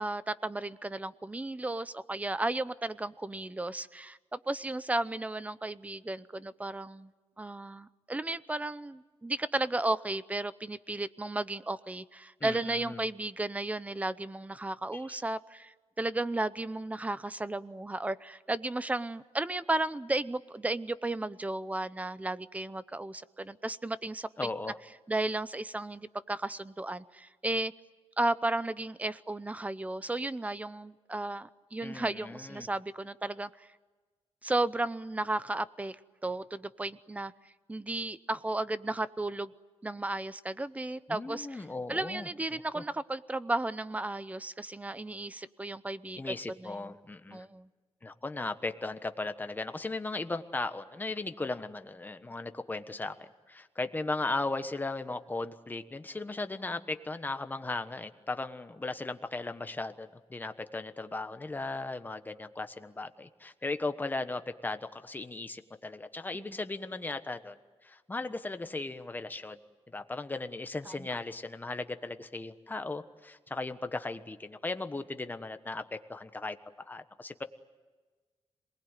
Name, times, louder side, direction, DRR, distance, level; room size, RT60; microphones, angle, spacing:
voice 1, 0.0-7.1 7.4-24.5 25.1-27.7 28.2-33.7 34.4-36.0 36.2-37.3 37.7-39.5 39.8-41.6 41.9-46.2 46.6-46.9 47.3-47.7 66.3-66.4 70.9-71.1, right 2 dB, 15° right, 15 dB, 0.7 m, -34 dB
voice 2, 12.4-13.0 14.9-15.0 24.4-24.8 31.8-32.7 41.1-42.8 46.2-47.4 48.0-67.6 67.8-69.6 69.9-76.6 76.9-77.4, left 3 dB, 15° left, 9 dB, 1.2 m, -37 dB
26.5 x 20.0 x 9.1 m, 1.4 s
wide cardioid pair, 140°, 11 cm